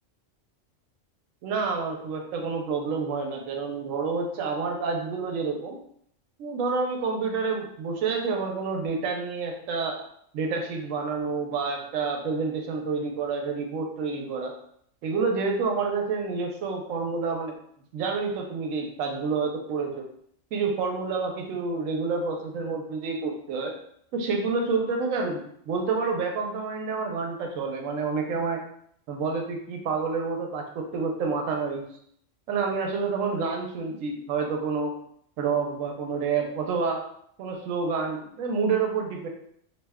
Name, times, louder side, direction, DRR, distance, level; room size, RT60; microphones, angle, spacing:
voice 1, 1.4-5.8 6.4-10.0 10.3-14.5 15.0-17.6 17.9-20.1 20.5-23.7 24.1-28.6 29.1-31.8 32.5-35.0 35.4-37.0 37.4-39.3, right 4 dB, 90° right, 2 dB, 1.0 m, -28 dB
2.7 x 2.1 x 3.4 m, 0.68 s
omnidirectional pair, 1.3 m